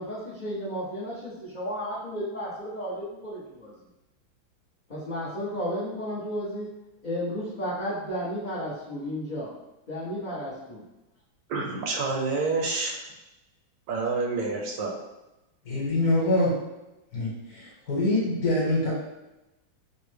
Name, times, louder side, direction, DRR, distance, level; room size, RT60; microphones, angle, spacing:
voice 1, 0.0-3.7 4.9-6.7 7.0-9.5 9.9-10.8, equal, 80° left, -8 dB, 0.4 m, -33 dB
voice 2, 11.5-13.0 13.9-14.9, right 3 dB, 80° right, 1 dB, 1.3 m, -28 dB
voice 3, 15.6-16.5 17.1-18.9, left 1 dB, 55° left, -5 dB, 1.4 m, -25 dB
4.8 x 2.1 x 3.2 m, 0.97 s
omnidirectional pair, 2.2 m